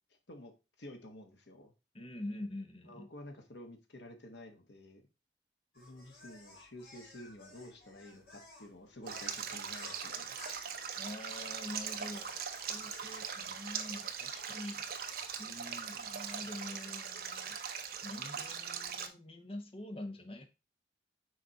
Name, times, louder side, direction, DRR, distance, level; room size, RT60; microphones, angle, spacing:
voice 1, 0.8-1.7 2.8-5.0 5.7-10.4, left 1 dB, 75° left, 4 dB, 1.3 m, -51 dB
voice 2, 1.9-3.1 11.0-14.8 15.4-17.6 18.0-20.5, left 1 dB, 30° left, 6 dB, 1.0 m, -45 dB
sound 1, 5.7-13.7, left 1 dB, 55° left, 3.4 m, -55 dB
Stream, 9.1-19.1, right 7 dB, 55° right, 0.8 m, -41 dB
6.4 x 4.2 x 4.1 m, 0.28 s
head